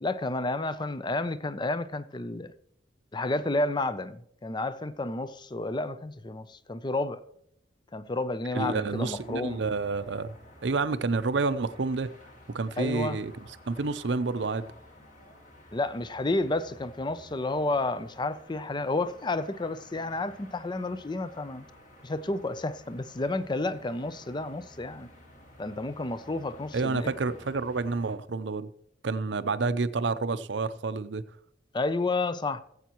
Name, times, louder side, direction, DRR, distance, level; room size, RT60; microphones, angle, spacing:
voice 1, 0.0-2.5 3.1-7.2 7.9-9.6 12.8-13.2 15.7-21.7 22.0-25.1 25.6-27.1 31.7-32.6, left 2 dB, 25° left, 0.5 m, -31 dB
sound 1, 8.4-28.1, left 1 dB, 45° left, 2.4 m, -53 dB
voice 2, 8.5-10.4 10.6-12.1 12.5-14.7 26.7-28.7 29.0-31.2, right 3 dB, 70° right, 0.6 m, -29 dB
17.0 x 8.1 x 3.0 m
head